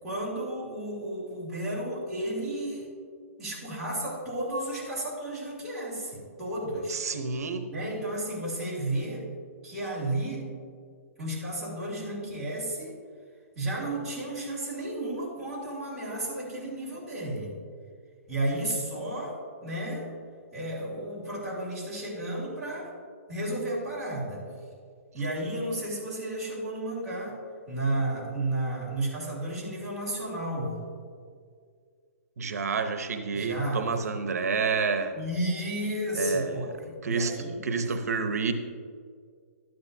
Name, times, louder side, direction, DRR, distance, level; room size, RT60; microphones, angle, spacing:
voice 1, 0.0-2.9 3.4-7.0 7.7-9.3 9.6-10.5 11.2-13.0 13.5-17.5 18.3-20.1 20.5-22.9 23.3-24.4 25.1-27.4 27.7-30.8 33.3-33.8 35.1-37.6, right 1 dB, 5° right, -11 dB, 2.6 m, -32 dB
voice 2, 6.9-7.7 32.4-35.2 36.1-36.7 37.0-37.3 37.6-38.5, right 5 dB, 80° right, 8 dB, 0.8 m, -29 dB
12.5 x 9.6 x 2.7 m, 2.1 s
hypercardioid pair, 175°, 8 cm